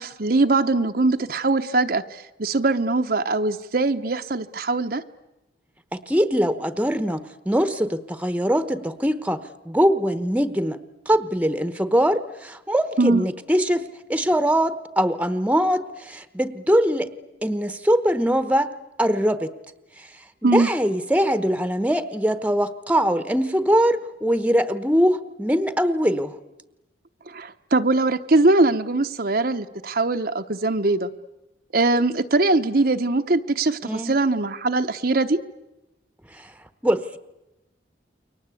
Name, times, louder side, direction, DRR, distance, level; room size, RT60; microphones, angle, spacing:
voice 1, 0.0-5.0 13.0-13.3 20.4-20.7 27.3-31.1 31.7-35.4, right 2 dB, 50° right, 6 dB, 0.9 m, -21 dB
voice 2, 5.9-10.8 11.1-17.1 17.4-18.7 19.0-19.5 20.4-26.3 33.8-34.2 36.3-36.5 36.8-37.2, equal, 5° right, 12 dB, 1.1 m, -22 dB
29.0 x 23.5 x 8.4 m, 0.98 s
head